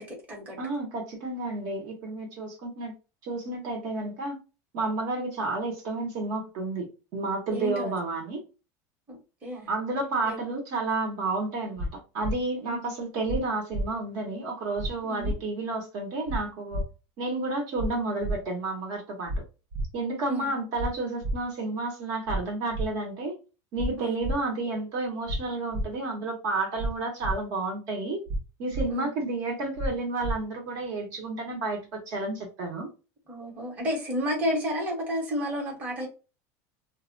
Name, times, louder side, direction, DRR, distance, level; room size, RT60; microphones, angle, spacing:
voice 1, 0.0-0.6 7.5-7.9 9.1-9.7 10.2-10.4 12.7-12.9 15.1-15.3 20.3-20.5 24.0-24.2 28.9-29.1 33.3-36.1, equal, 15° right, 0.9 m, -31 dB
voice 2, 0.6-2.9 3.2-4.4 4.7-8.4 9.7-16.8 17.2-19.3 19.9-23.3 23.7-28.2 28.6-32.9, right 3 dB, 45° right, 0.8 m, -31 dB
sound 1, 11.8-11.9 12.2-12.3 13.3-13.4 13.7-13.9 14.8-14.9 15.2-15.4 16.3-16.4 16.7-16.8 17.8-17.9 18.2-18.4 19.3-19.4 19.7-19.9 20.8-20.9 21.2-21.4 22.3-22.4 22.7-22.9 23.8-23.9 24.2-24.3 25.3-25.4 25.7-25.9 26.8-26.9 27.2-27.3 28.3-28.4 28.7-28.9 29.8-29.9 30.2-30.3, right 1 dB, 70° right, 0.5 m, -29 dB
2.1 x 2.0 x 3.7 m
cardioid pair, 170°, 9 cm